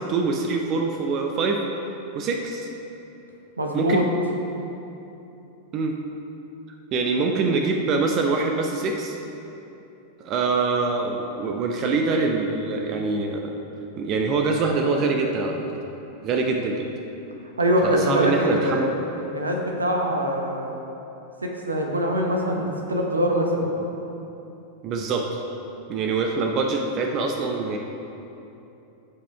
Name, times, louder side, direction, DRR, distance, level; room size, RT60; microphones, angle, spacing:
voice 1, 0.0-1.6 2.1-2.7 3.7-4.1 5.7-5.9 6.9-9.2 10.2-13.5 14.0-15.6 16.2-16.9 17.8-18.9 24.8-25.3 25.9-27.8, right 4 dB, 35° right, 3 dB, 0.6 m, -24 dB
voice 2, 3.6-4.0 17.6-20.8 21.4-22.6 22.9-23.7, equal, 75° right, 1 dB, 1.0 m, -23 dB
14.0 x 5.0 x 3.4 m, 2.9 s
figure-of-eight pair, 90°, 0 cm